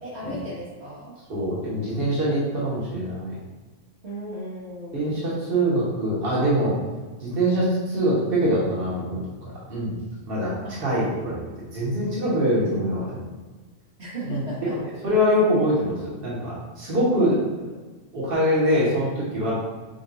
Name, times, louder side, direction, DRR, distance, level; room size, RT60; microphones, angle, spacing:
voice 1, 0.0-1.2 4.0-5.2 10.6-10.8 11.3-11.4 14.0-14.7, equal, 75° right, -9 dB, 1.6 m, -36 dB
voice 2, 1.3-3.3 4.9-6.8 7.2-10.0 10.3-10.5 10.8-11.4 11.7-13.2 14.3-17.5 18.1-19.5, equal, 55° right, -8 dB, 1.6 m, -24 dB
6.9 x 2.6 x 2.7 m, 1.3 s
omnidirectional pair, 1.1 m